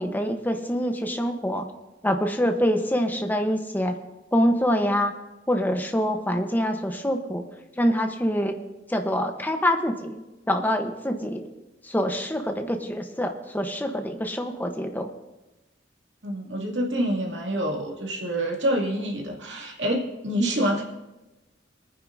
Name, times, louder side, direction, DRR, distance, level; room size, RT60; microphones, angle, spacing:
voice 1, 0.0-1.7 2.0-4.0 4.3-5.2 5.5-7.4 7.8-8.6 8.9-10.2 10.5-11.5 11.8-15.1, equal, 10° left, 5 dB, 1.0 m, -25 dB
voice 2, 16.2-20.8, right 1 dB, 70° right, -1 dB, 2.6 m, -27 dB
22.5 x 9.7 x 2.7 m, 1.0 s
head